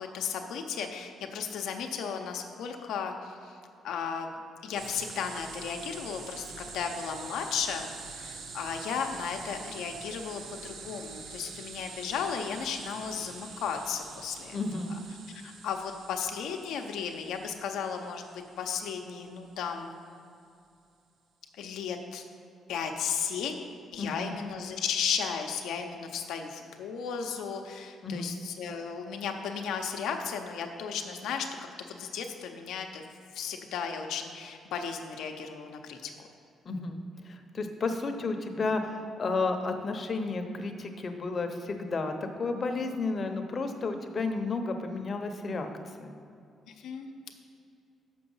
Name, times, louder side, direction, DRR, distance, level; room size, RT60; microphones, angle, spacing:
voice 1, 0.0-3.6 3.8-4.3 4.6-14.6 15.3-18.2 18.6-19.9 21.5-22.2 22.7-23.7 23.9-31.5 31.9-33.0 33.3-36.3 46.8-47.1, left 6 dB, 85° left, 3 dB, 0.7 m, -35 dB
sound 1, 4.7-19.3, right 5 dB, 70° right, 0.8 m, -45 dB
voice 2, 14.5-14.9 24.0-24.4 28.0-28.3 36.6-37.0 37.2-45.7 46.0-46.2, left 3 dB, 40° left, 5 dB, 0.8 m, -32 dB
6.7 x 6.2 x 5.5 m, 2.5 s
cardioid pair, 90°, 0 cm